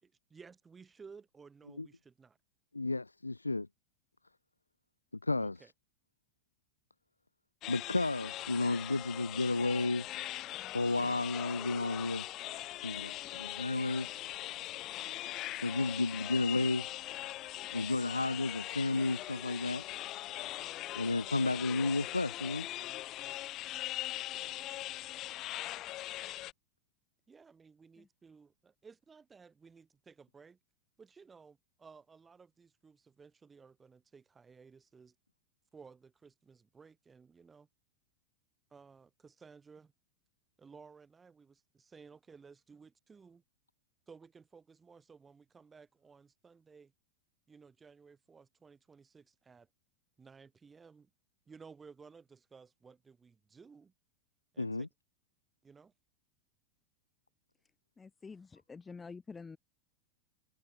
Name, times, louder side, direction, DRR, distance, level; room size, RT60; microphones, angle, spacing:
voice 1, 0.0-2.4 5.4-5.7 27.3-30.6 31.0-35.1 35.7-37.7 38.7-39.9 40.6-43.4 44.1-46.9 47.5-49.7 50.2-51.1 51.5-53.9 54.5-54.9 55.6-55.9, right 5 dB, 15° right, 4.8 m, -57 dB
voice 2, 2.7-3.7 5.2-5.6 7.7-10.1 10.7-12.2 12.8-14.1 15.6-16.9 17.7-19.8 21.0-22.7 54.6-54.9, left 2 dB, 80° left, 0.4 m, -32 dB
sound 1, 7.6-26.5, left 15 dB, 35° left, 1.8 m, -41 dB
voice 3, 58.0-59.6, left 4 dB, 15° left, 1.6 m, -48 dB
figure-of-eight pair, 90°, 0 cm